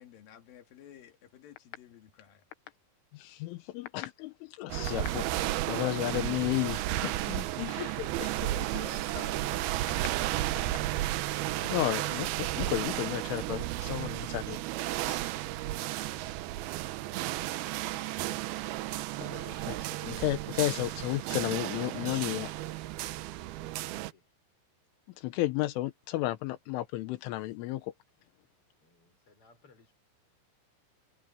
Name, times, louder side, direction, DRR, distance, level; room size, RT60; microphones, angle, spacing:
voice 1, 0.0-2.4 5.2-5.3 8.4-9.7, left 10 dB, 55° left, 3.4 m, -49 dB
voice 2, 3.1-5.2 5.7-8.5 10.0-10.4 11.6-14.6 15.1-15.4 19.2-19.8 20.0-22.5 25.2-27.9, left 16 dB, 90° left, 3.6 m, -33 dB
sound 1, 4.7-24.1, right 15 dB, 90° right, 2.2 m, -33 dB
voice 3, 15.3-18.8 19.5-19.6 23.5-24.3 28.8-29.9, left 4 dB, 30° left, 5.9 m, -62 dB
omnidirectional pair, 5.5 m